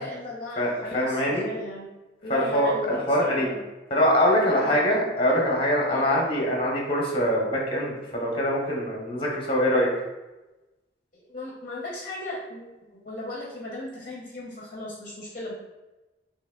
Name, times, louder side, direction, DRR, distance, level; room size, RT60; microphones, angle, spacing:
voice 1, 0.0-1.9 2.2-3.7 4.6-4.9 5.9-6.2 11.1-12.6 12.9-15.5, left 2 dB, 45° left, -5 dB, 0.7 m, -36 dB
voice 2, 0.6-1.4 2.3-3.5 3.9-9.9, equal, 30° left, -2 dB, 0.9 m, -23 dB
3.3 x 2.8 x 3.6 m, 1.1 s
head